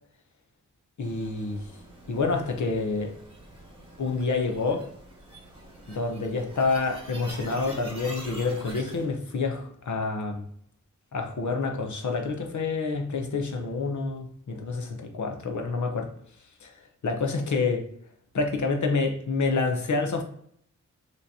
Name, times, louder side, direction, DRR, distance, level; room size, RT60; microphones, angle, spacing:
voice 1, 1.0-1.7 2.1-3.2 4.0-4.9 5.9-10.5 11.1-16.1 16.6-16.7 17.0-17.9 18.3-20.2, left 4 dB, 65° left, 4 dB, 0.9 m, -28 dB
sound 1, 1.0-9.1, right 1 dB, 15° right, 1.5 m, -45 dB
5.6 x 3.2 x 2.7 m, 0.67 s
wide cardioid pair, 125°, 32 cm